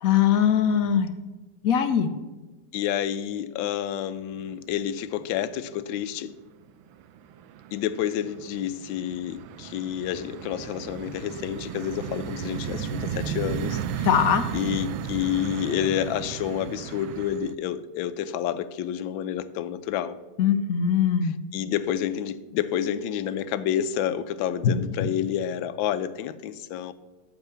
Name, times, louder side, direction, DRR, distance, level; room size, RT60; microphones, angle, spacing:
voice 1, 0.0-1.1 1.6-2.1 14.0-14.5 20.4-21.3 24.6-25.1, left 8 dB, 65° left, 9 dB, 0.9 m, -21 dB
voice 2, 2.7-6.3 7.7-14.1 14.5-20.2 21.5-26.9, left 10 dB, 85° left, 14 dB, 1.4 m, -29 dB
sound 1, 4.4-5.0 5.3-6.0 6.4-17.5, right 7 dB, 90° right, 1.4 m, -34 dB
13.5 x 4.7 x 6.8 m, 1.2 s
omnidirectional pair, 2.1 m